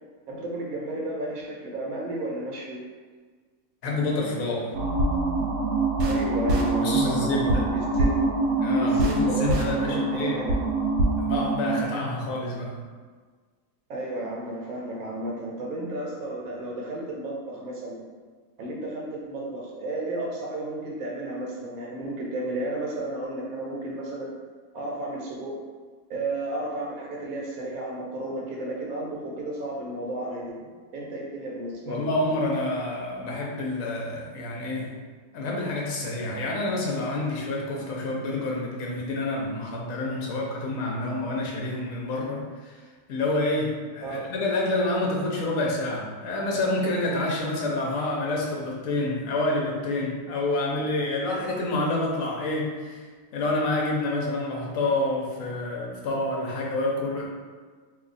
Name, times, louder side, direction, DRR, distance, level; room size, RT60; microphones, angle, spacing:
voice 1, 0.3-2.8 6.0-8.3 8.8-10.6 13.9-18.0 18.6-24.3 24.7-25.6 26.1-30.6 30.9-32.1 44.0-44.2, right 1 dB, 65° right, -2 dB, 1.1 m, -33 dB
voice 2, 3.8-4.7 6.8-7.7 8.6-10.4 11.2-12.8 31.9-35.0 35.3-42.8 43.1-53.0 53.3-57.3, left 2 dB, 60° left, -2 dB, 1.0 m, -28 dB
sound 1, 4.7-11.8, right 2 dB, 85° right, 1.2 m, -24 dB
2.8 x 2.3 x 3.9 m, 1.5 s
omnidirectional pair, 1.8 m